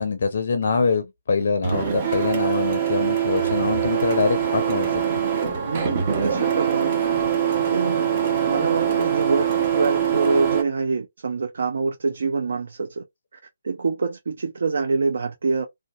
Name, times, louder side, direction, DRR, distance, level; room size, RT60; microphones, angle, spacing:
voice 1, 0.0-5.0, left 5 dB, 60° left, 0.4 m, -24 dB
Printer, 1.6-10.6, right 8 dB, 35° right, 0.8 m, -23 dB
voice 2, 5.6-7.0 7.7-13.0 13.6-15.7, right 4 dB, 65° right, 0.4 m, -25 dB
2.6 x 2.2 x 2.3 m
figure-of-eight pair, 145°, 0 cm